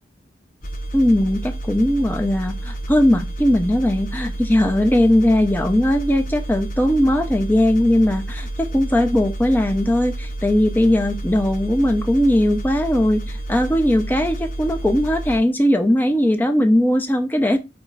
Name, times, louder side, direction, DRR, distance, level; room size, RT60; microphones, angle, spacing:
sound 1, 0.6-15.4, right 1 dB, 50° left, 1.0 m, -30 dB
voice 1, 0.9-17.6, left 1 dB, 10° left, 0.7 m, -19 dB
5.0 x 3.4 x 5.5 m
head